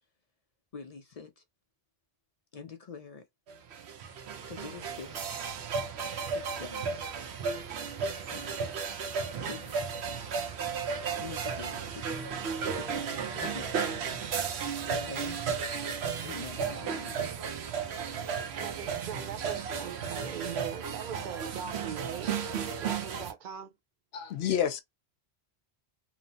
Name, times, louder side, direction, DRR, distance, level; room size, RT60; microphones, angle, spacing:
voice 1, 0.7-1.4 2.5-3.2 4.5-5.4 6.3-6.9 8.3-8.6 9.3-9.7 10.1-10.4 11.2-15.4 16.2-17.3, left 5 dB, 50° left, 0.4 m, -46 dB
sound 1, 3.5-23.3, right 6 dB, 85° right, 0.9 m, -34 dB
voice 2, 18.6-22.3 22.8-23.7, right 8 dB, 55° right, 0.8 m, -40 dB
voice 3, 24.1-24.8, left 9 dB, 75° left, 0.8 m, -29 dB
3.0 x 2.0 x 2.6 m
omnidirectional pair, 1.1 m